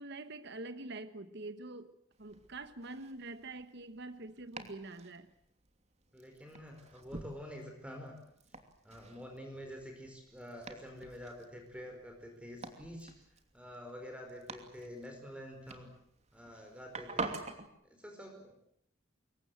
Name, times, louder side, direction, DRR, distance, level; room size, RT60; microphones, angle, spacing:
voice 1, 0.0-5.3, right 2 dB, 55° right, 10 dB, 1.3 m, -45 dB
Domestic sounds home sounds, 2.1-17.7, right 3 dB, 30° right, 2.8 m, -48 dB
voice 2, 6.1-8.2 8.8-13.1 13.5-15.9 16.3-17.4 17.8-18.5, equal, 5° right, 3 dB, 4.8 m, -48 dB
26.5 x 23.5 x 7.9 m, 0.72 s
head